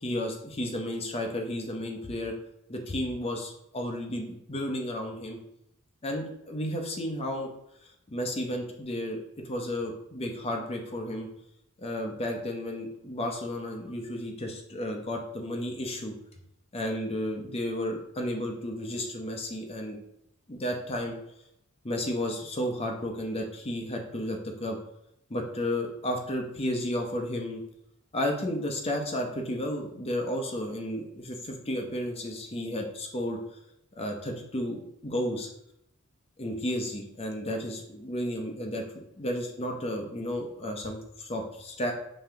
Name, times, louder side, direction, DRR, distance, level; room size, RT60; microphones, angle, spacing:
voice 1, 0.0-2.3 2.7-5.4 6.0-7.5 8.1-9.2 9.4-11.3 11.8-16.1 16.7-20.0 20.5-21.2 21.8-24.8 25.3-27.6 28.1-33.4 34.0-35.5 36.4-41.9, left 1 dB, 25° left, 2 dB, 0.7 m, -32 dB
5.4 x 2.8 x 3.4 m, 0.79 s
head